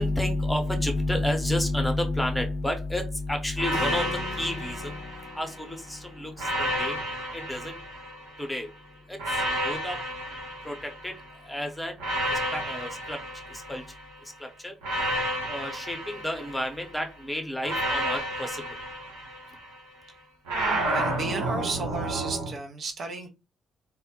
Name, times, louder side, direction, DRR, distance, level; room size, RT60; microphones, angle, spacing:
voice 1, 0.0-5.1 5.3-7.0 7.3-7.8 8.4-8.7 9.1-10.0 10.6-11.1 11.4-12.0 12.3-13.2 13.5-13.8 14.4-14.7 15.5-18.6, left 1 dB, 10° left, 0.7 m, -30 dB
sound 1, 3.6-5.7 6.4-8.5 9.2-11.4 12.0-14.1 14.8-17.0 17.6-19.8 20.5-22.5, right 1 dB, 80° right, 0.8 m, -31 dB
Keyboard (musical), 3.7-9.7, left 4 dB, 65° left, 0.5 m, -45 dB
voice 2, 20.9-23.3, right 3 dB, 55° right, 0.4 m, -33 dB
2.2 x 2.0 x 2.8 m
hypercardioid pair, 45°, 0 cm